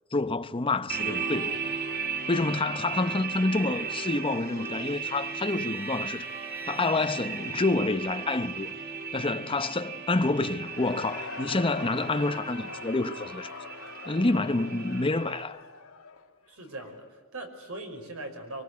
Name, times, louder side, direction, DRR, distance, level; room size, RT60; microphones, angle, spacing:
voice 1, 0.1-1.6 2.3-6.3 6.7-8.7 9.1-13.5 14.0-15.6, left 2 dB, 25° left, 0.8 m, -28 dB
sound 1, 0.9-15.4, right 6 dB, 45° right, 2.8 m, -36 dB
Wind instrument woodwind instrument, 3.5-8.1, right 2 dB, 10° right, 3.4 m, -49 dB
Cheering / Crowd, 10.4-17.1, left 4 dB, 70° left, 2.0 m, -43 dB
voice 2, 16.5-18.6, right 2 dB, 70° right, 5.6 m, -40 dB
25.5 x 24.0 x 9.6 m
head